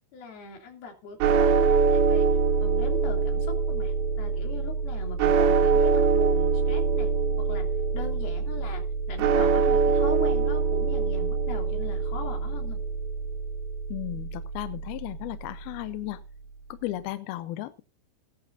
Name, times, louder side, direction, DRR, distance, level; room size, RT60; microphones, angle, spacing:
voice 1, 0.1-2.3 2.6-7.1 7.4-7.7 7.9-12.8, left 5 dB, 60° left, 3 dB, 4.5 m, -40 dB
sound 1, 1.2-15.4, right 5 dB, 75° right, 3.5 m, -24 dB
voice 2, 13.9-16.2 16.7-17.8, left 16 dB, 80° left, 12 dB, 2.3 m, -35 dB
18.5 x 10.5 x 2.6 m, 0.29 s
omnidirectional pair, 5.2 m